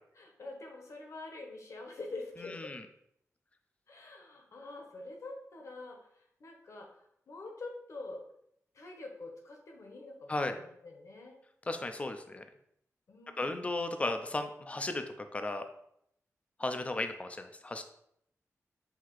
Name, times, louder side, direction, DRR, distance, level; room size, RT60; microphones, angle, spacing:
voice 1, 0.1-2.7 3.9-6.0 6.4-6.9 7.3-8.2 8.7-11.4 13.1-13.7, left 2 dB, 60° left, 1 dB, 0.9 m, -45 dB
voice 2, 11.7-12.4 13.4-15.6 16.6-17.8, left 2 dB, 25° left, 7 dB, 0.4 m, -35 dB
5.7 x 2.7 x 3.1 m, 0.72 s
wide cardioid pair, 130°, 6 cm